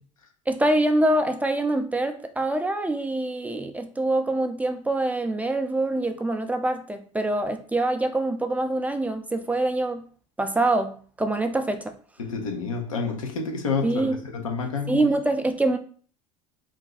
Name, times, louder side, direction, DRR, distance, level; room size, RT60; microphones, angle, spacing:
voice 1, 0.5-10.0 10.4-11.9 13.8-14.2 14.9-15.8, right 2 dB, 10° right, 0.3 m, -25 dB
voice 2, 12.2-15.2, left 5 dB, 90° left, 0.6 m, -29 dB
2.5 x 2.2 x 3.7 m
hypercardioid pair, 75°, 17 cm